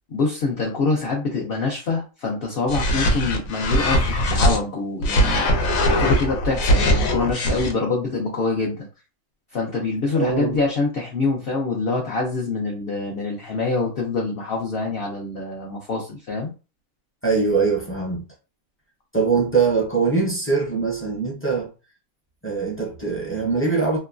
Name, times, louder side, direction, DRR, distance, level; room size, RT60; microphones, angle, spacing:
voice 1, 0.1-5.5 6.0-8.9 9.5-16.5, left 3 dB, 55° left, 0.7 m, -25 dB
sound 1, 2.7-4.6 5.0-7.7, equal, 85° left, 1.1 m, -20 dB
voice 2, 10.1-10.6 17.2-18.2 19.1-21.7 22.4-24.0, right 4 dB, 15° left, 0.4 m, -22 dB
3.0 x 2.1 x 2.4 m
omnidirectional pair, 1.4 m